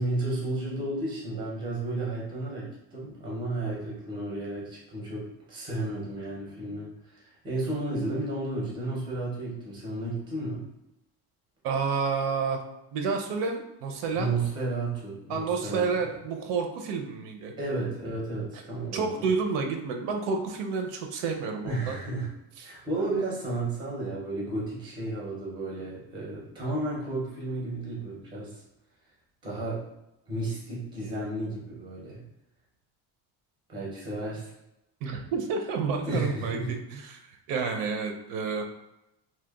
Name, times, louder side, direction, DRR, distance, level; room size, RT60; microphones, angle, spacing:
voice 1, 0.0-10.7 14.1-15.9 17.6-19.3 21.6-22.3 22.6-28.6 29.4-29.8 30.3-32.2 33.7-34.5 36.1-36.7, right 2 dB, 10° right, -5 dB, 0.4 m, -33 dB
voice 2, 11.6-12.6 12.9-14.3 15.3-17.5 18.9-22.0 22.6-22.7 35.0-37.2 37.5-38.6, right 5 dB, 75° right, 4 dB, 0.5 m, -30 dB
2.8 x 2.1 x 2.2 m, 0.88 s
cardioid pair, 170°, 43 cm